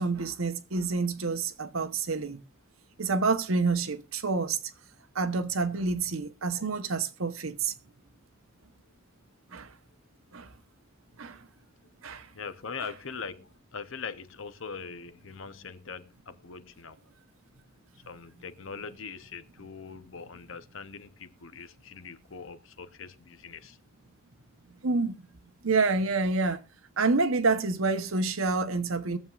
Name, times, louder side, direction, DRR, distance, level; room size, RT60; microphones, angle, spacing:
voice 1, 0.0-2.4 3.0-4.6 5.1-7.7 9.5-9.7 10.3-10.5 11.2-11.4 12.0-12.3 24.8-25.3 25.6-26.6 27.0-29.2, right 3 dB, 75° right, 1.0 m, -28 dB
voice 2, 12.3-17.0 18.1-23.8, left 5 dB, 65° left, 0.8 m, -42 dB
22.0 x 7.4 x 2.4 m
head